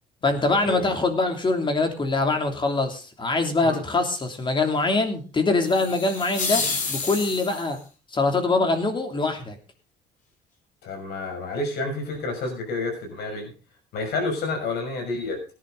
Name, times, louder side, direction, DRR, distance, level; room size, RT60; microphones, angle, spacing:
voice 1, 0.2-7.8 8.1-9.6, left 3 dB, 30° left, 5 dB, 3.0 m, -23 dB
sound 1, 5.6-7.8, left 4 dB, 50° left, 4.2 m, -29 dB
voice 2, 10.8-13.5 13.9-15.6, left 2 dB, 75° left, 4 dB, 6.5 m, -29 dB
17.5 x 11.0 x 4.0 m, 0.34 s
cardioid pair, 110°, 17 cm